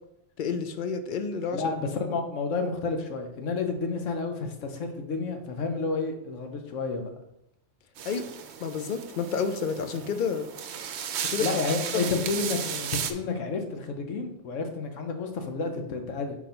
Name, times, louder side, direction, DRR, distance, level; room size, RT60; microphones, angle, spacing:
voice 1, 0.4-1.7 8.1-8.2 8.6-10.5 11.2-11.5 11.9-12.1, left 6 dB, 60° left, 9 dB, 0.5 m, -30 dB
voice 2, 1.5-7.1 11.4-16.4, left 4 dB, 85° left, 5 dB, 1.2 m, -30 dB
sound 1, 8.0-13.1, right 8 dB, 70° right, 0.8 m, -35 dB
4.6 x 4.3 x 5.1 m, 0.83 s
omnidirectional pair, 1.3 m